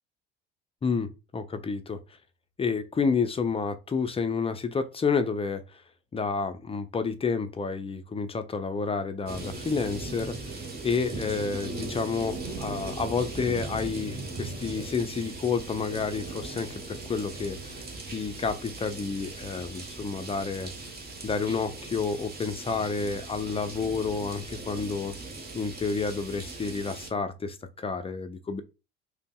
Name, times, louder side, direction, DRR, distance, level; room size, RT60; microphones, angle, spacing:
voice 1, 0.8-2.0 2.6-5.8 6.1-20.7 21.2-25.1 25.5-28.6, left 5 dB, 20° left, 0.4 m, -30 dB
sound 1, 9.3-27.1, right 2 dB, 30° right, 1.1 m, -39 dB
5.1 x 2.0 x 2.2 m
hypercardioid pair, 60°, 33 cm